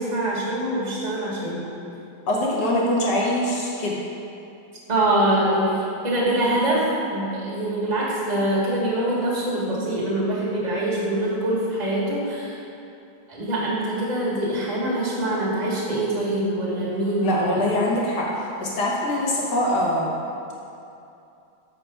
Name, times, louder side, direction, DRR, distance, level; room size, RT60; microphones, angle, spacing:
voice 1, 0.0-1.6 4.9-5.7 6.0-6.8 7.1-12.5 13.3-17.6, right 1 dB, 20° right, -7 dB, 1.4 m, -24 dB
voice 2, 2.3-4.0 17.2-20.1, left 1 dB, 60° left, -4 dB, 1.7 m, -23 dB
6.7 x 4.5 x 5.4 m, 2.7 s
omnidirectional pair, 2.2 m